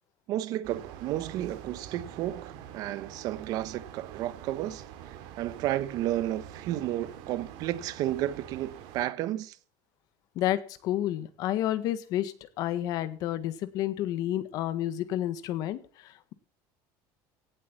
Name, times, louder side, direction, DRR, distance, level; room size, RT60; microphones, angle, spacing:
voice 1, 0.3-4.8 5.4-9.6, right 13 dB, 50° right, 1.2 m, -32 dB
sound 1, 0.6-9.1, right 10 dB, 70° right, 2.8 m, -45 dB
voice 2, 10.3-16.3, left 13 dB, 45° left, 1.6 m, -30 dB
17.5 x 8.4 x 7.2 m
cardioid pair, 175°, 9 cm